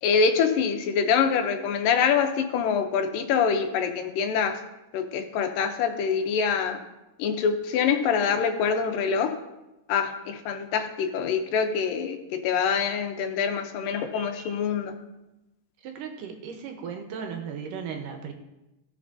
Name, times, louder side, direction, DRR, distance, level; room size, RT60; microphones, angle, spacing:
voice 1, 0.0-4.6 4.9-6.8 7.2-9.4 9.9-14.9, left 6 dB, 90° left, 6 dB, 2.5 m, -25 dB
voice 2, 15.8-18.3, right 6 dB, 80° right, 4 dB, 2.5 m, -36 dB
16.5 x 5.9 x 2.7 m, 0.98 s
omnidirectional pair, 3.8 m